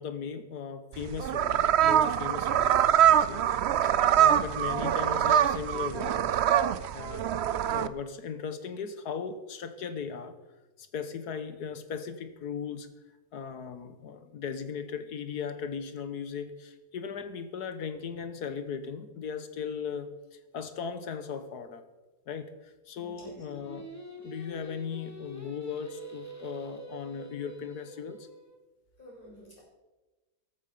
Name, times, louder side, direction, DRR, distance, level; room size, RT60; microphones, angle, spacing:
voice 1, 0.0-3.4 3.8-6.4 6.9-7.3 7.7-10.3 10.8-12.9 13.3-21.8 22.3-23.9 24.2-28.3, left 6 dB, 80° left, 10 dB, 1.7 m, -38 dB
sound 1, 0.9-7.9, right 10 dB, 65° right, 0.7 m, -24 dB
voice 2, 23.0-23.5 29.0-29.6, right 1 dB, 30° left, -5 dB, 6.8 m, -50 dB
Singing, 23.4-28.6, right 1 dB, 10° left, 1.5 m, -45 dB
14.5 x 12.5 x 5.5 m, 1.1 s
omnidirectional pair, 1.7 m